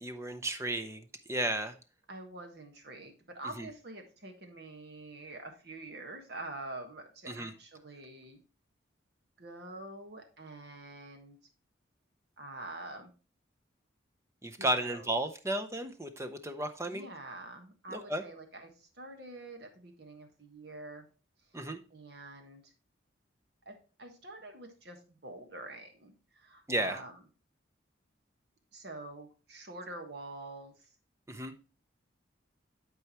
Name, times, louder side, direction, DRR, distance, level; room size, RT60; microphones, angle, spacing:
voice 1, 0.0-1.0 1.3-1.7 3.6-3.7 7.3-7.5 14.4-17.0 17.9-18.2 21.5-21.8 26.7-27.0 31.3-31.5, right 1 dB, 15° right, 7 dB, 0.6 m, -33 dB
voice 2, 2.1-8.4 9.4-11.4 12.4-13.1 14.6-15.1 16.8-21.1 21.9-22.7 23.6-27.2 28.7-30.9, right 2 dB, 55° right, 4 dB, 1.4 m, -46 dB
11.5 x 4.6 x 3.0 m, 0.34 s
head